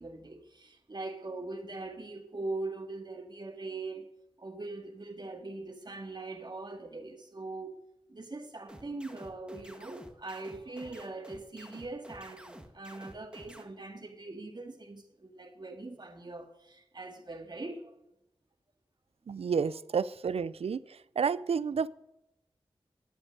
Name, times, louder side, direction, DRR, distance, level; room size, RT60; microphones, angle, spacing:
voice 1, 0.0-4.1 4.4-7.7 8.1-17.9 19.3-19.4 19.7-19.8, right 2 dB, 45° right, 2.1 m, -41 dB
sound 1, 8.7-13.6, right 1 dB, 10° right, 1.7 m, -50 dB
voice 2, 19.3-20.8 21.2-21.9, right 6 dB, 80° right, 0.5 m, -30 dB
11.5 x 8.7 x 6.6 m
cardioid pair, 50°, 10 cm